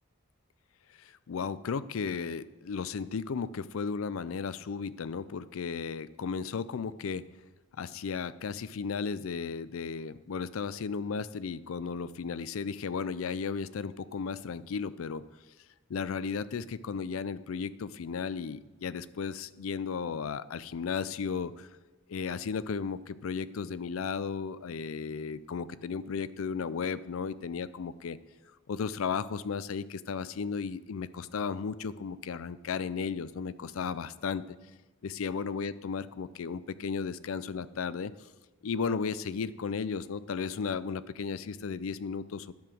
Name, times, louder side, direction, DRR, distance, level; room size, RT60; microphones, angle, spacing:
voice 1, 1.0-7.2 7.8-15.2 15.9-21.7 22.1-28.2 28.7-34.6 35.0-38.1 38.6-42.5, left 5 dB, 90° left, 16 dB, 0.4 m, -34 dB
10.5 x 7.0 x 6.2 m, 1.1 s
head